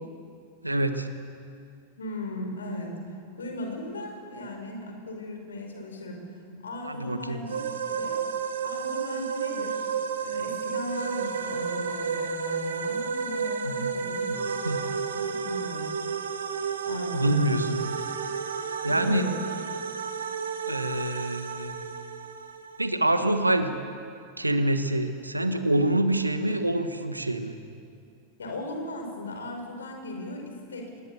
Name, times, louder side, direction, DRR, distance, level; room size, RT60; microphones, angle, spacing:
voice 1, 0.6-1.1 6.5-7.4 13.6-13.9 14.3-14.4 14.6-14.8 17.1-17.8 18.8-19.3 20.7-21.8 22.8-23.7 24.4-27.5, right 1 dB, 85° right, 9 dB, 1.4 m, -26 dB
voice 2, 2.0-2.9 3.4-6.2 6.6-8.2 8.6-9.9 10.2-14.3 14.8-15.9 16.8-17.6 18.8-19.4 28.4-31.0, left 1 dB, 70° left, 3 dB, 4.7 m, -37 dB
sound 1, 7.5-22.9, right 6 dB, 65° right, 1.5 m, -32 dB
25.0 x 20.0 x 7.0 m, 2.4 s
figure-of-eight pair, 90°, 0 cm